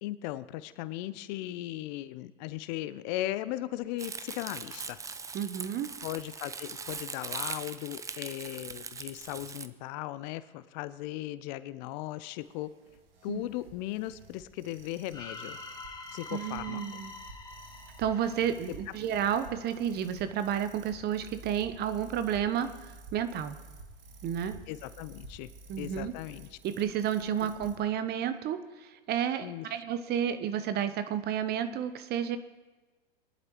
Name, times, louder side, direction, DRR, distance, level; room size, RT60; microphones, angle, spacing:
voice 1, 0.0-5.0 6.0-12.7 13.2-15.6 16.1-16.8 24.7-25.5 25.8-26.6 27.4-27.5 29.4-29.7, left 15 dB, 50° left, 15 dB, 0.7 m, -37 dB
Crumpling crinkling, 4.0-9.7, right 5 dB, 10° right, 0.5 m, -40 dB
voice 2, 5.3-5.9 13.3-13.4 16.3-17.1 18.0-22.7 23.1-23.6 24.2-24.6 25.7-26.1 26.6-32.4, right 9 dB, 35° right, 11 dB, 0.9 m, -31 dB
sound 1, 12.4-27.8, right 2 dB, 75° right, 2.3 m, -51 dB
sound 2, 15.1-19.2, left 3 dB, 15° left, 1.4 m, -45 dB
22.0 x 11.0 x 3.1 m, 1.3 s
hypercardioid pair, 100°, 30 cm